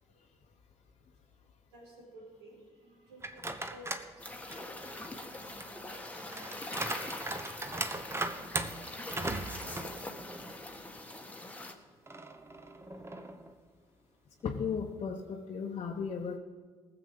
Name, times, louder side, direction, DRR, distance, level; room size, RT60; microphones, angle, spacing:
voice 1, 1.7-8.6 9.2-10.1, right 1 dB, 80° right, -3 dB, 4.3 m, -55 dB
sound 1, 3.2-4.1 4.5-10.6 11.0-11.1 12.1-13.5, right 2 dB, 20° right, 1.1 m, -39 dB
sound 2, 4.2-11.7, left 2 dB, 10° left, 1.7 m, -43 dB
voice 2, 14.4-16.4, left 6 dB, 45° left, 0 dB, 1.1 m, -35 dB
19.5 x 7.0 x 5.3 m, 1.5 s
hypercardioid pair, 50°, 14 cm